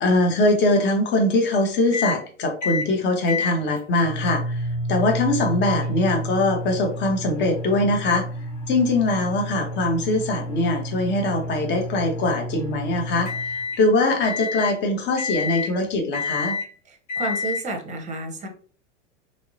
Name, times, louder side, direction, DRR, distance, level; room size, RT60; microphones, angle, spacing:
voice 1, 0.0-8.3 8.7-16.5, left 2 dB, 30° left, 3 dB, 0.8 m, -22 dB
sound 1, 1.9-2.2 2.6-2.9 3.3-13.8 14.2-14.8 15.2-15.7 16.1-16.7 17.1-17.6, left 1 dB, 70° left, 1.5 m, -30 dB
voice 2, 16.9-18.5, right 2 dB, 20° right, 4 dB, 0.8 m, -31 dB
3.0 x 2.7 x 2.7 m, 0.41 s
figure-of-eight pair, 85°, 37 cm